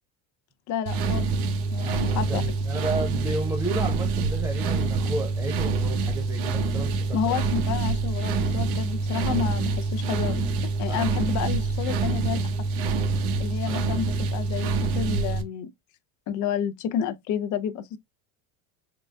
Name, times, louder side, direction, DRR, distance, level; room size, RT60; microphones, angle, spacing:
voice 1, 0.7-1.3 1.7-2.4 7.1-12.4 13.4-15.7 16.3-18.0, left 8 dB, 45° left, 0.6 m, -30 dB
sound 1, 0.9-15.4, right 4 dB, 65° right, 1.0 m, -26 dB
voice 2, 1.8-7.3 10.9-11.1 12.9-13.8, right 2 dB, 5° right, 0.6 m, -33 dB
3.8 x 3.7 x 2.2 m
cardioid pair, 140°, 42 cm